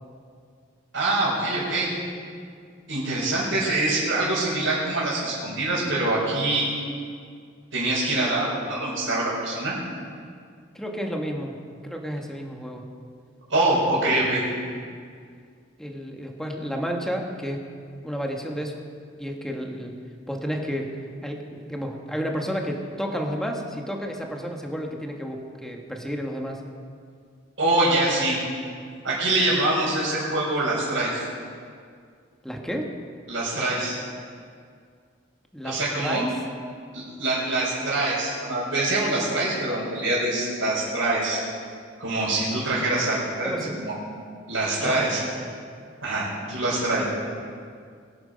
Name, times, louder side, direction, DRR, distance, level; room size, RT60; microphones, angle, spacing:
voice 1, 0.9-1.9 2.9-6.6 7.7-9.7 13.5-14.4 27.6-28.4 29.0-31.2 33.3-33.9 35.6-36.2 36.9-41.4 42.0-44.0 44.5-45.2 46.0-47.0, right 2 dB, 75° right, -11 dB, 5.0 m, -24 dB
voice 2, 10.7-11.6 11.8-12.9 14.0-14.3 15.8-17.6 18.0-18.8 19.2-19.9 20.3-20.9 21.2-26.6 32.4-32.9 35.5-36.3 43.4-43.7 44.8-45.5 46.9-47.0, equal, 5° left, 1 dB, 1.4 m, -31 dB
23.0 x 9.2 x 5.3 m, 2.2 s
head